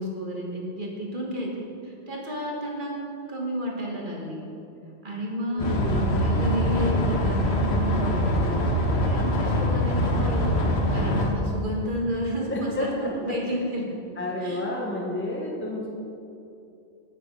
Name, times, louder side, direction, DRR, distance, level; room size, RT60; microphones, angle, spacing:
voice 1, 0.0-1.5 1.8-2.9 3.3-4.4 5.0-8.4 9.0-10.5 10.9-13.8 14.4-14.6, equal, 45° right, -2 dB, 1.7 m, -31 dB
voice 2, 5.5-6.1 12.5-13.3 14.2-15.9, left 1 dB, 10° left, -2 dB, 0.9 m, -30 dB
sound 1, 5.6-11.3, equal, 65° left, 1.2 m, -24 dB
8.6 x 7.4 x 5.4 m, 2.7 s
omnidirectional pair, 1.2 m